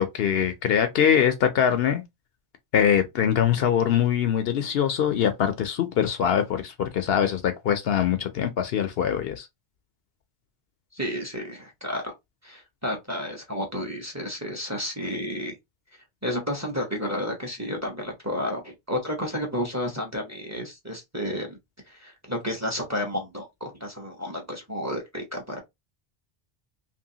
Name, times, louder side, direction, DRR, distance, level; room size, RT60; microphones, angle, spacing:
voice 1, 0.0-2.0 2.7-9.5, left 8 dB, 70° left, 0.7 m, -23 dB
voice 2, 10.9-12.1 12.4-15.5 16.2-21.6 21.9-25.6, equal, 15° right, 0.8 m, -31 dB
2.9 x 2.7 x 2.8 m
omnidirectional pair, 1.1 m